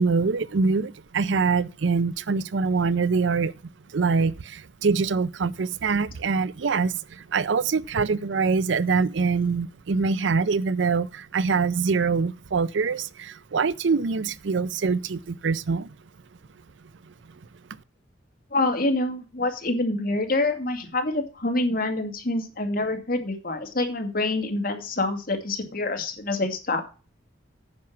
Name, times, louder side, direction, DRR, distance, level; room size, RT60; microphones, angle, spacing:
voice 1, 0.0-3.5 3.9-15.9, right 4 dB, 75° right, 0.5 m, -24 dB
voice 2, 18.5-26.8, left 2 dB, 50° left, 2.4 m, -26 dB
9.7 x 5.8 x 7.2 m
head